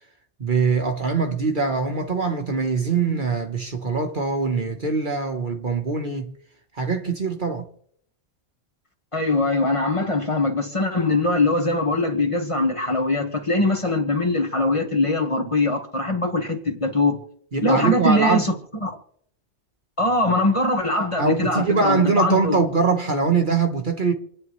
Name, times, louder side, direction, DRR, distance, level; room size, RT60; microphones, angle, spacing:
voice 1, 0.4-6.3 6.8-7.7 17.5-18.5 21.2-24.1, right 4 dB, 45° right, 1.3 m, -22 dB
voice 2, 9.1-17.2 17.6-18.5 18.8-19.0 20.0-22.6, left 2 dB, 25° left, 1.5 m, -22 dB
28.0 x 9.6 x 3.1 m
omnidirectional pair, 1.2 m